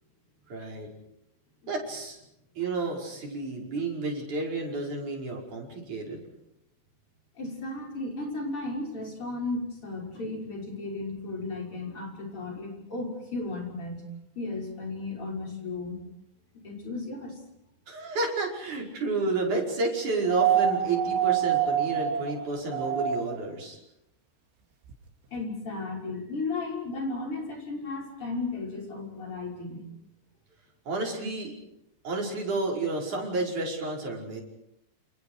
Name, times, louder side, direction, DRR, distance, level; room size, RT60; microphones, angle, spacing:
voice 1, 0.5-0.9 1.7-2.2 2.6-6.2 17.9-23.8 30.9-31.5 32.0-34.4, right 3 dB, 45° right, 0 dB, 6.6 m, -31 dB
voice 2, 7.4-14.1 14.3-16.0 16.5-17.4 25.3-29.8, left 3 dB, 30° left, 0 dB, 6.8 m, -35 dB
sound 1, 20.2-23.5 24.9-25.0, right 10 dB, 90° right, 5.0 m, -26 dB
30.0 x 28.5 x 4.9 m, 0.82 s
omnidirectional pair, 5.1 m